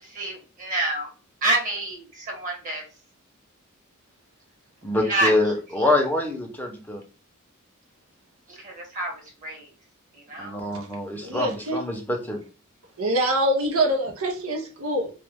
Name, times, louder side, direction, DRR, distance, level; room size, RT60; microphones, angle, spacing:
voice 1, 0.0-1.1 1.4-2.8 5.0-5.3 5.8-5.9 8.5-9.7 10.3-10.6, right 2 dB, 40° right, 1.1 m, -28 dB
voice 2, 4.8-7.0 10.4-12.4, left 2 dB, 10° left, 0.7 m, -25 dB
voice 3, 11.2-11.8 13.0-15.1, right 1 dB, 75° right, 0.7 m, -24 dB
3.0 x 2.2 x 3.4 m
head